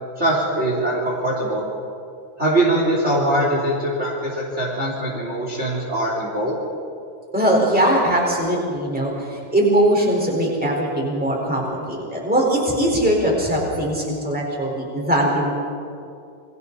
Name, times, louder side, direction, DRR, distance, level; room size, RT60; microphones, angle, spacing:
voice 1, 0.2-1.6 2.4-6.6, right 1 dB, 20° right, -4 dB, 3.5 m, -22 dB
voice 2, 7.3-15.5, right 1 dB, ahead, -2 dB, 4.3 m, -20 dB
29.5 x 23.5 x 4.2 m, 2.4 s
omnidirectional pair, 4.0 m